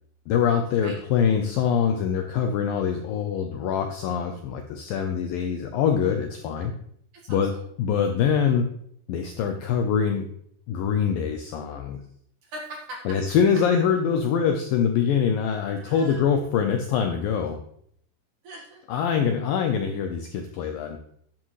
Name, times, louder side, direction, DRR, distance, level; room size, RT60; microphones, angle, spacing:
voice 1, 0.3-6.7 7.3-7.5 7.8-8.7 9.1-10.3 10.7-12.0 13.1-17.6 18.9-21.0, left 7 dB, 80° left, 5 dB, 2.1 m, -24 dB
voice 2, 7.2-7.6 12.4-13.2 15.8-16.2 18.4-18.8 19.2-19.3, right 1 dB, 55° right, -1 dB, 2.7 m, -40 dB
11.0 x 10.0 x 3.2 m, 0.67 s
omnidirectional pair, 5.0 m